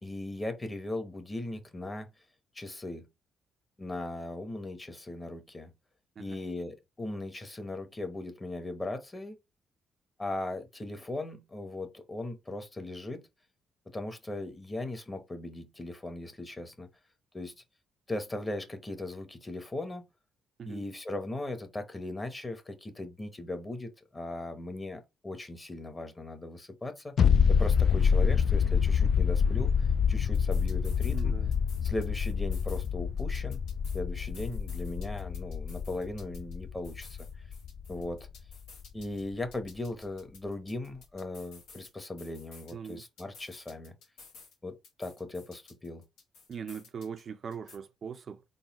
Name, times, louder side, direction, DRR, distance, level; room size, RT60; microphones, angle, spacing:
voice 1, 0.0-2.1 2.5-3.1 3.8-5.7 6.2-9.4 10.2-13.3 13.9-16.9 17.3-17.5 18.1-20.0 20.6-27.1 27.5-29.7 30.1-31.3 31.8-33.6 33.9-37.3 37.9-38.3 38.9-43.9 44.6-46.0, left 2 dB, 20° left, 1.0 m, -38 dB
sound 1, 27.2-38.5 38.8-38.9, left 6 dB, 55° left, 0.3 m, -27 dB
sound 2, 30.2-31.2 31.5-32.9 33.2-36.6 36.8-39.2 39.5-41.9 42.2-44.6 44.8-47.2 47.5-47.8, left 4 dB, 90° left, 1.5 m, -54 dB
voice 2, 31.1-31.5 42.7-43.0 46.5-48.4, right 7 dB, 50° right, 0.4 m, -41 dB
3.9 x 2.2 x 4.0 m
cardioid pair, 90°, 0 cm